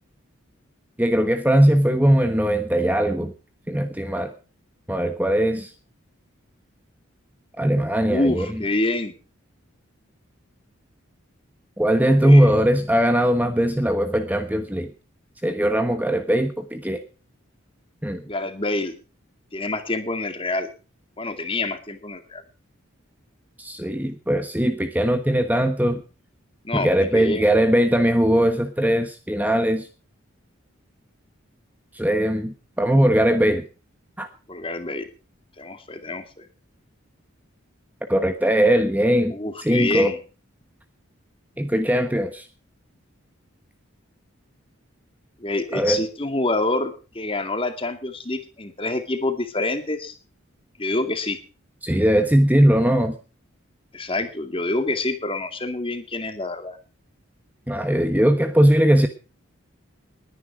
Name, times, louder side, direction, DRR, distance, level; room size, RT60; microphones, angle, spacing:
voice 1, 1.0-3.3 3.7-4.3 4.9-5.7 7.6-8.5 11.8-14.9 15.4-17.0 18.0-18.2 23.6-26.0 26.7-29.9 31.9-33.6 34.2-34.3 38.1-40.1 41.6-42.5 45.7-46.0 51.8-53.1 57.7-59.1, right 1 dB, 10° right, 8 dB, 1.1 m, -20 dB
voice 2, 8.1-9.1 12.0-12.5 18.3-18.9 19.5-20.7 21.2-22.4 26.6-27.5 34.5-35.1 35.6-36.4 39.3-40.2 45.4-50.1 50.8-51.4 53.9-56.8, left 2 dB, 25° left, 8 dB, 2.3 m, -27 dB
20.5 x 10.0 x 4.8 m, 0.37 s
head